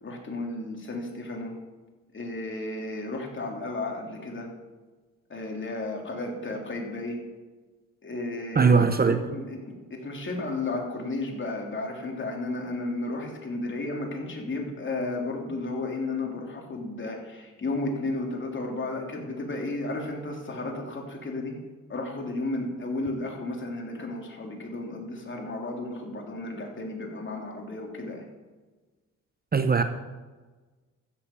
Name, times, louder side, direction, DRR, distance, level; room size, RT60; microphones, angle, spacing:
voice 1, 0.0-1.5 2.1-4.5 5.3-7.2 8.0-9.6 9.9-21.5 21.9-28.3, left 2 dB, 35° left, 0 dB, 3.3 m, -33 dB
voice 2, 8.6-9.2 29.5-29.8, right 5 dB, 30° right, 9 dB, 0.9 m, -20 dB
14.5 x 7.1 x 7.1 m, 1.3 s
cardioid pair, 80°, 32 cm